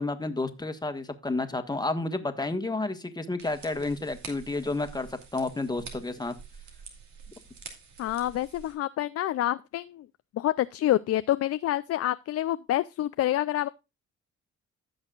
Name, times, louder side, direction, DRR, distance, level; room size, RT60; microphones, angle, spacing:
voice 1, 0.0-6.3, left 2 dB, 15° left, 1.4 m, -31 dB
sound 1, 3.4-8.8, right 5 dB, 70° right, 2.5 m, -47 dB
voice 2, 8.0-10.1 10.3-13.7, left 13 dB, 55° left, 0.4 m, -27 dB
15.5 x 6.3 x 2.4 m
cardioid pair, 90°, 30 cm